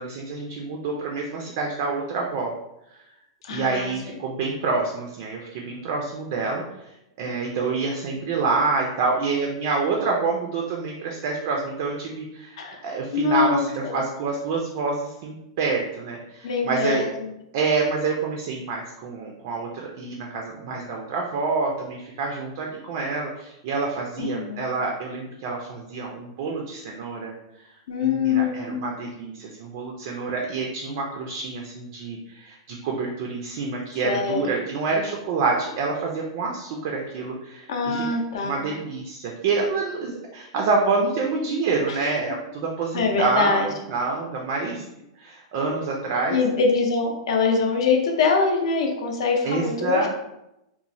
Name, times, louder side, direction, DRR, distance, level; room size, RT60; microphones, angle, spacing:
voice 1, 0.0-2.5 3.5-17.0 17.5-27.3 28.0-38.0 38.4-43.6 43.9-44.8 45.2-46.4 49.4-50.1, right 4 dB, 40° right, 0 dB, 0.3 m, -27 dB
voice 2, 3.4-3.9 12.6-12.8 13.1-14.0 16.4-17.3 24.2-24.7 27.9-28.8 34.0-34.4 37.7-38.8 41.9-42.1 42.9-43.7 46.3-50.1, left 4 dB, 65° left, 2 dB, 0.5 m, -24 dB
2.9 x 2.0 x 2.6 m, 0.87 s
supercardioid pair, 170°, 3 cm